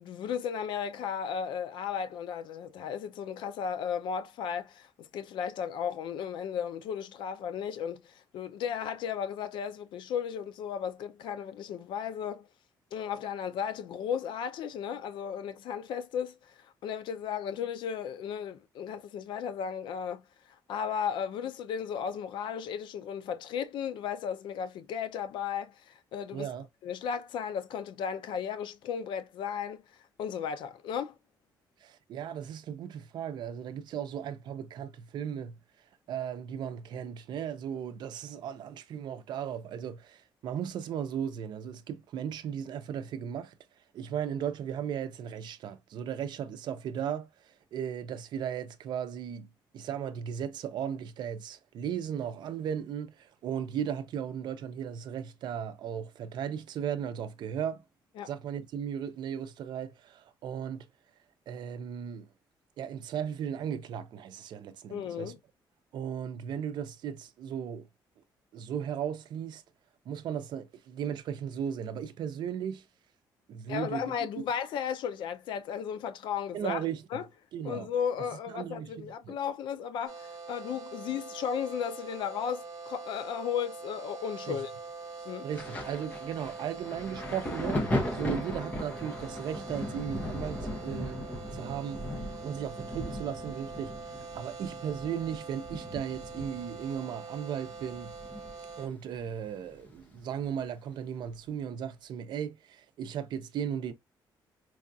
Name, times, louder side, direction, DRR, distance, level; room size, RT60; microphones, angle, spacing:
voice 1, 0.0-12.5 12.9-26.5 26.8-29.8 30.2-31.1 58.2-58.3 64.9-65.4 73.7-76.8 77.1-77.2 77.6-84.7 85.3-85.5, left 8 dB, 75° left, 0.5 m, -35 dB
voice 2, 26.3-26.6 31.8-35.6 36.1-43.5 43.9-57.9 58.2-60.9 61.5-62.3 62.8-65.3 65.9-67.9 68.5-69.6 70.1-72.9 73.5-74.4 76.5-77.2 77.5-77.9 78.2-79.4 84.5-84.6 85.4-91.2 91.5-98.2 98.8-103.9, right 8 dB, 65° right, 0.5 m, -36 dB
sound 1, 80.1-98.9, right 4 dB, 45° right, 1.0 m, -44 dB
Thunder, 85.5-98.9 99.1-100.5 101.3-101.5, left 1 dB, 20° left, 0.8 m, -38 dB
4.7 x 2.3 x 2.6 m
cardioid pair, 175°, 8 cm